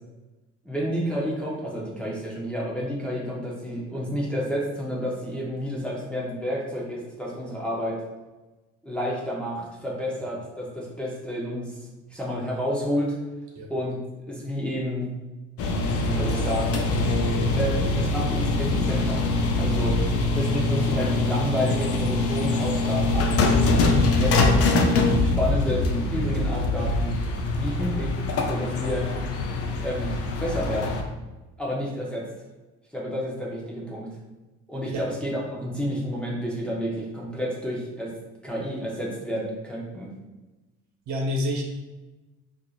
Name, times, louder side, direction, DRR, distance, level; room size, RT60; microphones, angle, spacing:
voice 1, 0.6-8.0 8.8-11.8 12.1-13.2 13.7-14.0 14.3-15.1 16.0-16.8 17.6-19.2 19.6-20.0 20.4-23.3 23.9-27.2 27.5-28.2 28.5-29.1 29.8-30.1 30.4-31.0 31.6-32.3 32.9-34.1 34.7-38.1 38.4-40.1, equal, 5° left, -5 dB, 0.6 m, -30 dB
sound 1, 15.6-31.0, left 2 dB, 55° left, 0.5 m, -23 dB
voice 2, 41.1-41.6, left 1 dB, 75° right, 0 dB, 0.9 m, -28 dB
4.4 x 2.5 x 2.4 m, 1.1 s
cardioid pair, 145°, 29 cm